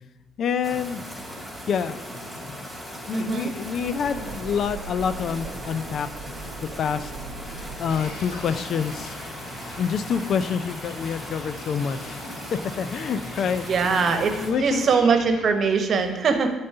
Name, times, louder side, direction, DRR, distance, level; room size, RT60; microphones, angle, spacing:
voice 1, 0.4-1.1 1.7-2.0 2.5-2.7 3.1-7.1 7.5-9.2 9.8-12.2 12.5-14.9, left 7 dB, 60° left, 13 dB, 0.4 m, -27 dB
sound 1, 0.6-14.5, equal, 10° left, 3.0 m, -38 dB
sound 2, 1.9-10.5, right 4 dB, 80° right, 0.6 m, -42 dB
voice 2, 3.1-3.5 13.7-16.5, right 5 dB, 55° right, 7 dB, 1.1 m, -22 dB
sound 3, 7.9-15.5, left 1 dB, 85° left, 2.1 m, -42 dB
8.6 x 4.1 x 6.7 m, 1.1 s
supercardioid pair, 65°, 0 cm